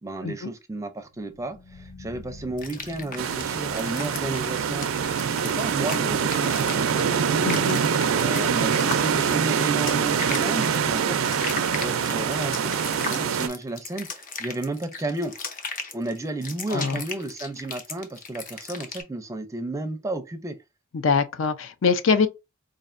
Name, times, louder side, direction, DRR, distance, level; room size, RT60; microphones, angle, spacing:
voice 1, 0.0-4.9 5.2-7.1 8.2-11.2 11.7-15.3 15.9-20.6, right 2 dB, 15° right, 0.5 m, -32 dB
sound 1, 1.0-12.0 12.3-12.4, left 2 dB, 90° left, 0.9 m, -49 dB
sound 2, 2.6-19.0, left 4 dB, 40° left, 0.7 m, -37 dB
sound 3, 3.2-13.5, right 7 dB, 85° right, 0.4 m, -24 dB
voice 2, 7.4-7.8 16.7-17.0 20.9-22.3, left 5 dB, 70° left, 0.5 m, -23 dB
5.1 x 2.5 x 2.5 m
head